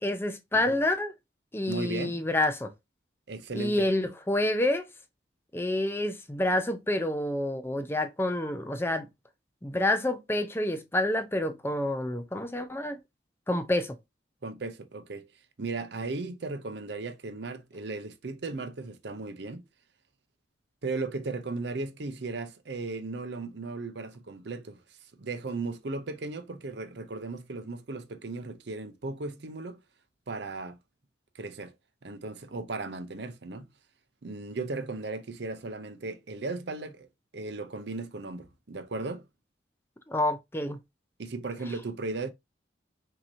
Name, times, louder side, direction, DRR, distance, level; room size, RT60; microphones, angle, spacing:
voice 1, 0.0-1.1 1.5-2.7 3.5-4.9 5.5-9.1 9.6-13.0 13.5-14.0 40.1-40.8, left 1 dB, 10° left, 0.6 m, -28 dB
voice 2, 1.7-2.2 3.3-3.9 14.4-15.3 15.6-19.6 20.8-29.8 30.3-30.8 31.3-31.7 32.0-33.7 34.2-37.1 37.3-39.3 41.2-42.3, right 3 dB, 60° right, 0.6 m, -36 dB
5.9 x 2.9 x 2.7 m
head